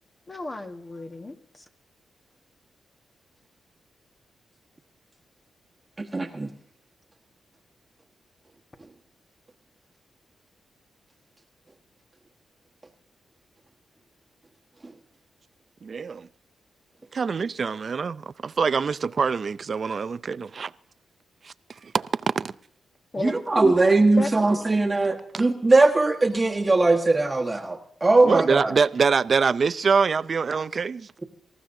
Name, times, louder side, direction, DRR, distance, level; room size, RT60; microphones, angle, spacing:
voice 1, 0.3-1.6 23.1-23.7 24.2-24.5, left 2 dB, 30° left, 1.5 m, -32 dB
voice 2, 6.0-6.5 23.2-28.8, right 2 dB, 25° right, 1.4 m, -20 dB
voice 3, 15.8-16.3 17.1-20.7 21.8-22.5 28.2-31.1, right 5 dB, 50° right, 0.5 m, -24 dB
25.5 x 14.0 x 2.7 m
cardioid pair, 85°, 0 cm